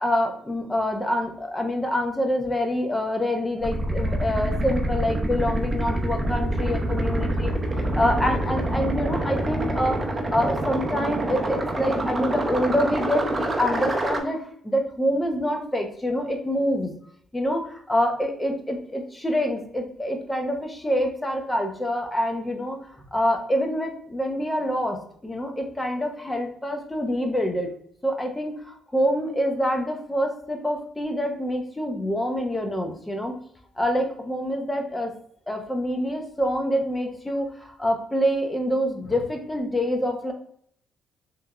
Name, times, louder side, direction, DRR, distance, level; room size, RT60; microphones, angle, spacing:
voice 1, 0.0-7.5 7.8-16.9 17.3-27.7 28.0-33.3 33.8-35.1 35.5-40.3, equal, 10° left, 3 dB, 0.7 m, -26 dB
sound 1, 3.6-14.2, right 1 dB, 25° right, 0.6 m, -26 dB
3.4 x 3.0 x 2.3 m, 0.63 s
cardioid pair, 90°, 0 cm